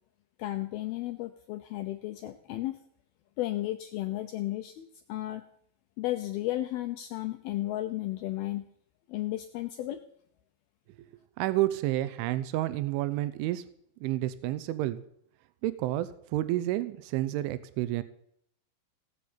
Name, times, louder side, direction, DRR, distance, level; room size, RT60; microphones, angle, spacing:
voice 1, 0.4-2.8 3.4-5.4 6.0-8.7 9.1-10.0, left 15 dB, 85° left, 7 dB, 2.2 m, -34 dB
voice 2, 11.4-13.6 14.0-15.0 15.6-18.0, right 15 dB, 85° right, 14 dB, 3.3 m, -30 dB
17.5 x 8.2 x 8.7 m, 0.69 s
omnidirectional pair, 5.5 m